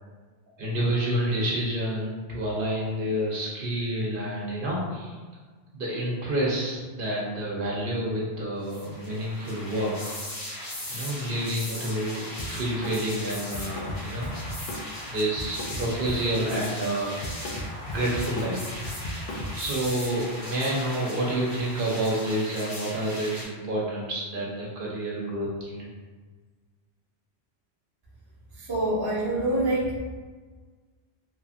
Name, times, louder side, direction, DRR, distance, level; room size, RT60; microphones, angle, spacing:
voice 1, 0.6-5.2 5.7-10.2 10.9-14.3 15.1-17.2 17.9-19.1 19.5-25.8, right 1 dB, 60° right, -5 dB, 0.8 m, -29 dB
sound 1, 8.6-23.4, left 1 dB, 35° left, 0.9 m, -38 dB
Drum kit, 12.4-13.0 13.3-16.7 17.0-19.7, equal, 55° left, 0.5 m, -36 dB
voice 2, 28.6-30.0, right 1 dB, 25° right, -6 dB, 0.6 m, -26 dB
2.9 x 2.5 x 2.5 m, 1.4 s
omnidirectional pair, 1.1 m